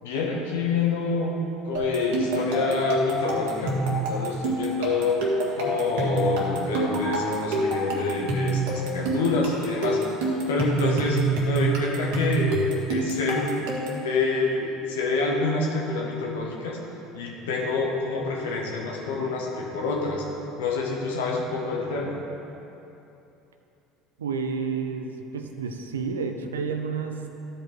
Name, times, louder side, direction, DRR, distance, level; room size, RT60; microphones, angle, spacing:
voice 1, 0.0-1.4 1.6-10.0 10.5-11.2 11.4-12.5 12.9-13.6 14.0-16.8 17.1-20.2 20.6-22.1, left 3 dB, 75° left, -1 dB, 1.5 m, -27 dB
sound 1, 1.7-14.1, right 2 dB, 65° right, 1.7 m, -27 dB
voice 2, 24.2-27.3, right 5 dB, 85° right, 5 dB, 0.6 m, -30 dB
13.0 x 5.1 x 4.6 m, 2.9 s
hypercardioid pair, 70°, 0 cm